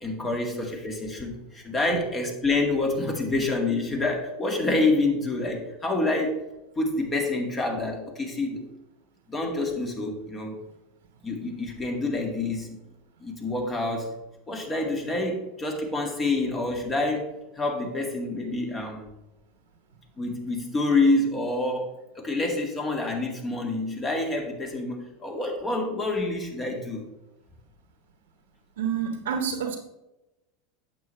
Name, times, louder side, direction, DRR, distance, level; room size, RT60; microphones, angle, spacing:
voice 1, 0.0-6.5 6.8-8.7 9.3-10.6 11.2-12.7 13.2-14.2 14.5-19.2 20.2-27.1, left 2 dB, 25° left, 2 dB, 2.1 m, -27 dB
voice 2, 28.8-29.8, right 7 dB, 80° right, 5 dB, 0.9 m, -29 dB
9.0 x 7.5 x 3.3 m, 0.97 s
hypercardioid pair, 95°, 0 cm